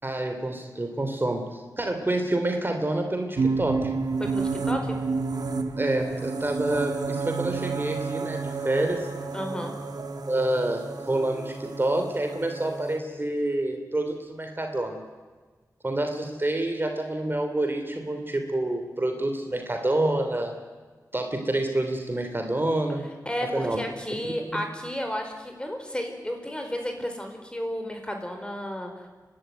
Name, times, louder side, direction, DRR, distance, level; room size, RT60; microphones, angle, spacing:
voice 1, 0.0-3.9 5.8-9.1 10.2-15.0 15.8-20.5 21.1-23.1 23.5-23.8 24.5-24.6, right 1 dB, 30° right, 5 dB, 3.1 m, -27 dB
sound 1, 3.4-13.0, right 4 dB, 75° right, 1.6 m, -30 dB
voice 2, 4.2-5.0 9.3-9.8 23.3-28.9, equal, 15° left, 4 dB, 4.5 m, -32 dB
29.5 x 12.5 x 9.3 m, 1.4 s
wide cardioid pair, 60°, 7 cm